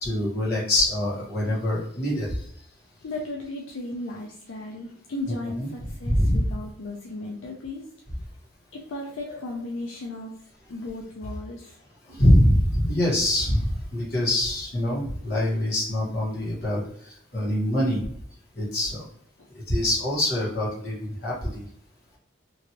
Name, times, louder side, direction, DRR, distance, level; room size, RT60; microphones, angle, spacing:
voice 1, 0.0-2.3 5.6-5.7 6.0-6.4 9.3-9.4 12.1-16.8 17.3-18.0 18.6-19.0 19.7-21.6, left 1 dB, 55° left, -6 dB, 1.3 m, -24 dB
voice 2, 3.0-7.9 8.7-10.3 10.7-11.8, left 2 dB, 75° left, -1 dB, 0.5 m, -35 dB
3.0 x 2.6 x 2.8 m, 0.68 s
head